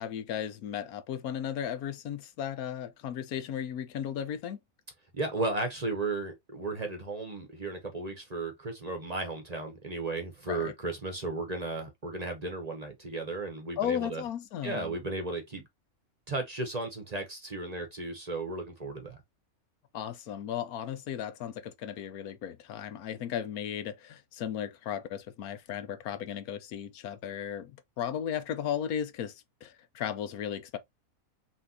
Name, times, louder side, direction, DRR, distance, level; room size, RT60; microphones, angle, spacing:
voice 1, 0.0-4.6 10.5-10.7 13.8-14.9 19.9-30.8, left 9 dB, 85° left, 1.2 m, -35 dB
voice 2, 5.1-14.2 14.6-15.6 16.3-19.2, right 2 dB, 30° right, 1.0 m, -35 dB
5.8 x 2.8 x 2.7 m
omnidirectional pair, 1.5 m